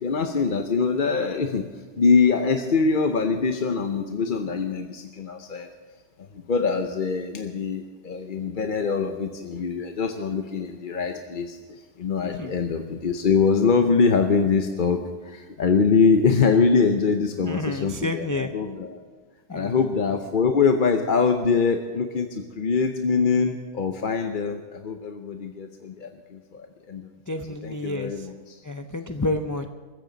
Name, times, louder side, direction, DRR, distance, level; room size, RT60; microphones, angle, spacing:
voice 1, 0.0-5.7 6.2-19.0 19.5-27.1 27.6-28.6, left 5 dB, 50° left, 5 dB, 0.9 m, -23 dB
voice 2, 17.4-18.5 19.5-19.8 27.3-28.1 28.6-29.7, left 2 dB, 25° left, 6 dB, 0.5 m, -29 dB
23.0 x 14.5 x 4.0 m, 1.5 s
omnidirectional pair, 1.2 m